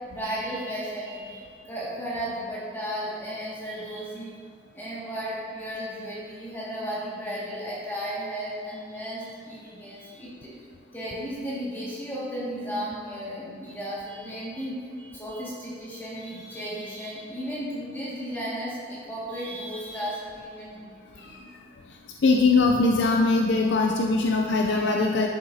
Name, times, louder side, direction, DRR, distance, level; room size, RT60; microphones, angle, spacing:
voice 1, 0.1-4.4 4.7-10.5 10.9-21.5, equal, 10° left, -8 dB, 2.0 m, -34 dB
voice 2, 22.2-25.3, left 3 dB, 80° left, 1 dB, 0.5 m, -21 dB
11.5 x 6.8 x 2.8 m, 2.1 s
head